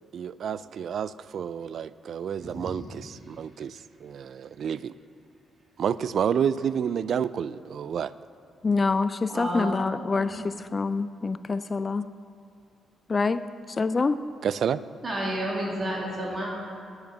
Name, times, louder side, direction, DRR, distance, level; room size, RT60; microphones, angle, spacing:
voice 1, 0.1-4.9 5.8-8.1 14.4-14.8, right 8 dB, 65° right, 17 dB, 0.3 m, -29 dB
voice 2, 8.6-12.1 13.1-13.4 13.8-14.2, left 4 dB, 35° left, 13 dB, 0.3 m, -26 dB
voice 3, 9.3-9.7 10.2-10.3 15.0-16.6, right 1 dB, 45° right, -3 dB, 2.4 m, -30 dB
9.3 x 7.9 x 6.7 m, 2.4 s
cardioid pair, 80°, 0 cm